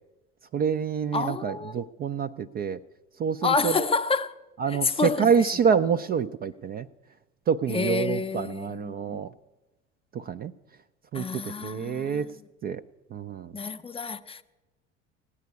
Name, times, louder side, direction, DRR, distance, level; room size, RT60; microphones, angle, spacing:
voice 1, 0.5-2.8 3.2-3.9 4.6-6.9 7.5-9.3 10.1-10.5 11.1-11.2 11.6-12.3 12.6-12.8 13.1-13.5, right 7 dB, 25° right, 0.4 m, -27 dB
voice 2, 1.1-1.9 3.4-4.4 4.7-5.5 7.7-9.3 11.1-12.3 13.5-14.4, left 4 dB, 15° left, 0.6 m, -29 dB
17.0 x 9.7 x 8.3 m
figure-of-eight pair, 70°, 36 cm